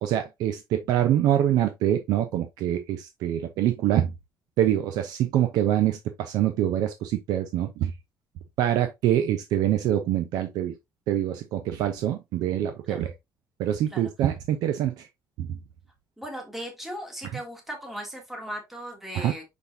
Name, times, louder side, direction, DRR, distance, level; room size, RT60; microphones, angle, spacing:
voice 1, 0.0-4.1 4.6-7.9 8.6-10.7 11.1-13.1 13.6-15.1 15.4-15.6 19.1-19.3, right 11 dB, 75° right, 0.9 m, -25 dB
voice 2, 16.2-19.4, equal, 5° right, 1.8 m, -37 dB
6.3 x 5.4 x 2.8 m
cardioid pair, 175°, 7 cm